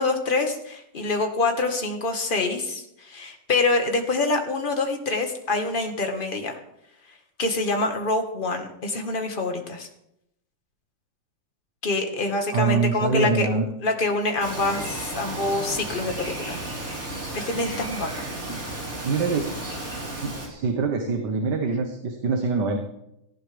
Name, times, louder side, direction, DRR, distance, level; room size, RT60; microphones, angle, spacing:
voice 1, 0.0-6.6 7.4-9.9 11.8-13.5 13.8-16.6 17.3-18.1, left 3 dB, 30° left, 4 dB, 1.7 m, -26 dB
voice 2, 12.5-13.7 19.0-19.5 20.2-22.8, right 4 dB, 65° right, 4 dB, 1.9 m, -24 dB
Bird vocalization bird call bird song, 14.4-20.5, right 2 dB, 45° right, 4.5 m, -33 dB
18.0 x 15.0 x 3.5 m, 0.81 s
omnidirectional pair, 2.0 m